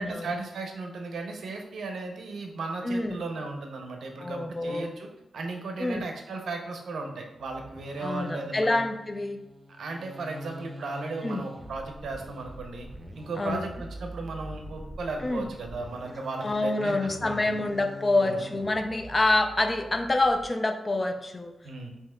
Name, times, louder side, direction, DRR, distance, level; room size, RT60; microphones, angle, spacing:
voice 1, 0.0-5.1 5.3-8.8 9.7-12.9 13.2-17.6 18.2-18.4 21.6-21.9, right 3 dB, 80° right, 3 dB, 0.6 m, -36 dB
voice 2, 2.8-3.2 4.2-4.9 5.8-6.0 8.0-9.4 11.2-11.4 13.4-13.6 15.2-15.4 16.4-21.5, left 2 dB, 25° left, 6 dB, 0.4 m, -27 dB
sound 1, 7.4-20.5, equal, 35° right, 0.6 m, -44 dB
5.4 x 2.8 x 2.2 m, 0.95 s
wide cardioid pair, 105°, 0 cm